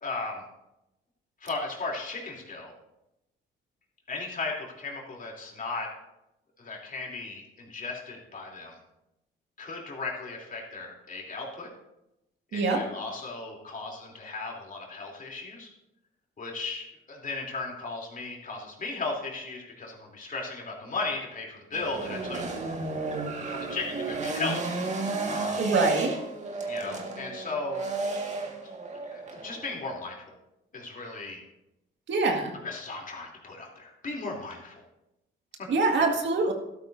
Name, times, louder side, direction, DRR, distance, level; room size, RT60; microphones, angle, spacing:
voice 1, 0.0-0.4 1.4-2.7 4.1-5.9 6.6-8.8 9.6-11.7 12.5-15.7 16.4-22.4 23.4-25.7 26.7-28.1 29.1-30.3 30.7-31.4 32.5-34.8 35.6-35.7, left 3 dB, 45° left, -1 dB, 3.2 m, -36 dB
voice 2, 12.5-12.8 25.6-26.1 32.1-32.5 35.7-36.5, right 3 dB, 65° right, 2 dB, 2.0 m, -24 dB
sound 1, 21.7-29.8, right 3 dB, 35° right, 1.9 m, -33 dB
12.5 x 12.5 x 2.7 m, 0.88 s
cardioid pair, 90°, 20 cm